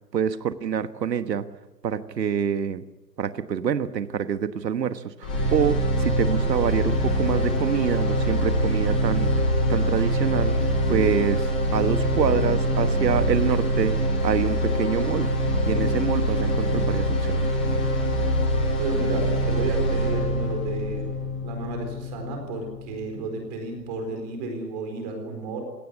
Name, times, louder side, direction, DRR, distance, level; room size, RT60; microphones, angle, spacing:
voice 1, 0.1-1.5 1.8-2.8 3.2-9.3 9.7-10.6 10.9-13.9 14.2-15.3 15.7-17.5, right 8 dB, 75° right, 12 dB, 1.4 m, -26 dB
sound 1, 5.2-23.2, equal, 5° left, 0.7 m, -24 dB
voice 2, 18.8-21.1 21.4-25.6, right 3 dB, 25° right, 4 dB, 4.3 m, -32 dB
21.0 x 17.5 x 9.7 m, 1.1 s
hypercardioid pair, 165°, 50 cm